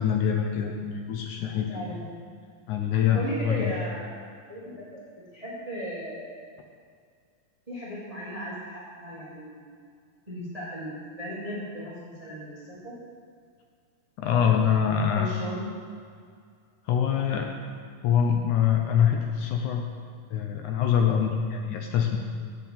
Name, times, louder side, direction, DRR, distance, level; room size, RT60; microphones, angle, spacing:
voice 1, 0.0-1.9 2.7-3.7 14.2-15.3 16.9-17.5 18.0-19.9 20.3-22.2, left 8 dB, 75° left, 3 dB, 1.9 m, -24 dB
voice 2, 1.7-2.0 3.1-4.2 4.5-5.0 5.3-6.3 7.7-9.7 10.3-12.9 15.1-15.7, equal, 25° right, -6 dB, 0.7 m, -36 dB
7.7 x 7.2 x 7.4 m, 2.1 s
omnidirectional pair, 3.9 m